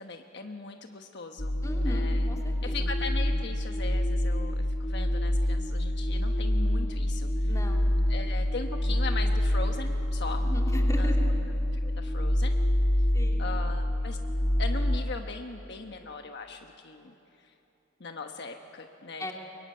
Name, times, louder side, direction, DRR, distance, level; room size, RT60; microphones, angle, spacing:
voice 1, 0.0-1.5 1.9-2.3 2.6-7.5 8.1-10.4 11.0-11.1 11.8-12.6 13.4-14.2 14.6-17.5 18.0-19.3, left 3 dB, 60° left, 4 dB, 1.2 m, -39 dB
sound 1, 1.4-15.0, left 1 dB, 40° left, 2.2 m, -26 dB
voice 2, 1.6-2.7 7.5-7.9 10.3-11.3 13.1-13.5 19.2-19.3, equal, 15° left, 1 dB, 2.8 m, -38 dB
23.5 x 23.0 x 9.5 m, 2.9 s
head